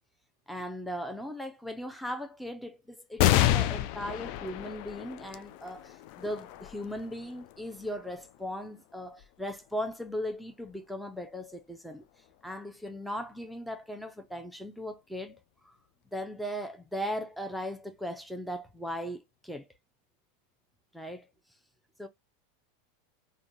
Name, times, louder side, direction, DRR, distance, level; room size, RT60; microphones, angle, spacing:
voice 1, 0.5-12.0 12.4-15.4 15.6-15.7 16.1-19.7 20.9-21.3 22.0-22.1, equal, ahead, 0.6 m, -38 dB
sound 1, 3.2-10.1 10.7-10.8 11.9-12.5, left 14 dB, 55° left, 0.3 m, -31 dB
3.6 x 2.2 x 2.5 m
figure-of-eight pair, 85°, 0 cm